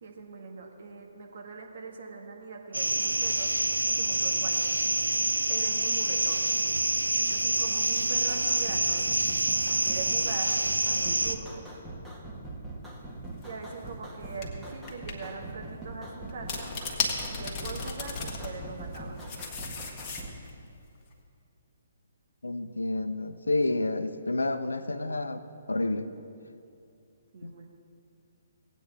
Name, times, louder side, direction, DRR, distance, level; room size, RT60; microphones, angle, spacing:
voice 1, 0.0-3.5 3.8-4.7 5.5-6.4 7.1-9.1 9.6-10.6 10.8-11.7 13.4-16.7 17.3-19.2 27.3-27.7, right 4 dB, 50° right, 2 dB, 1.6 m, -41 dB
sound 1, 2.7-11.4, right 2 dB, 80° right, 0.6 m, -27 dB
sound 2, 8.1-20.4, right 2 dB, 5° right, 1.5 m, -42 dB
sound 3, 13.4-13.6 14.4-14.5 14.9-15.2 16.3-18.5 18.9-20.5, left 4 dB, 25° left, 1.5 m, -34 dB
voice 2, 22.4-25.4 25.7-26.1 27.4-27.5, left 2 dB, 75° left, 10 dB, 0.6 m, -29 dB
18.0 x 9.1 x 3.5 m, 2.5 s
figure-of-eight pair, 130°, 0 cm